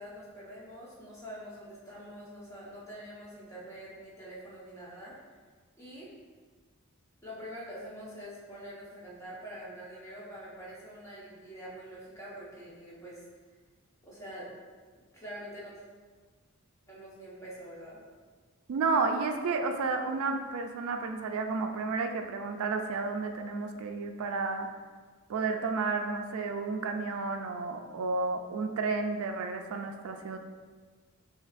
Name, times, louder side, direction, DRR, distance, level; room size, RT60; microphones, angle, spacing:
voice 1, 0.0-5.2 5.8-6.1 7.2-13.2 14.0-14.5 15.1-15.7 16.9-18.0, equal, 15° left, -8 dB, 1.1 m, -45 dB
voice 2, 18.7-24.7 25.3-30.4, right 4 dB, 75° right, 5 dB, 0.3 m, -31 dB
5.5 x 2.9 x 2.5 m, 1.5 s
head